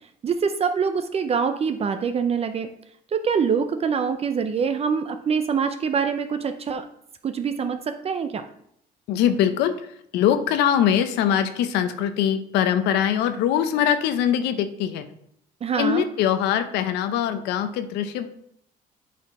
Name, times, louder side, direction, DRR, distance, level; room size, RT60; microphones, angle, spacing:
voice 1, 0.2-2.7 3.1-6.8 7.2-8.4 15.6-16.0, right 6 dB, 35° right, 8 dB, 0.5 m, -24 dB
voice 2, 9.1-15.0 15.8-18.3, left 9 dB, 90° left, 10 dB, 0.7 m, -22 dB
8.3 x 4.3 x 4.2 m, 0.72 s
cardioid pair, 110°, 17 cm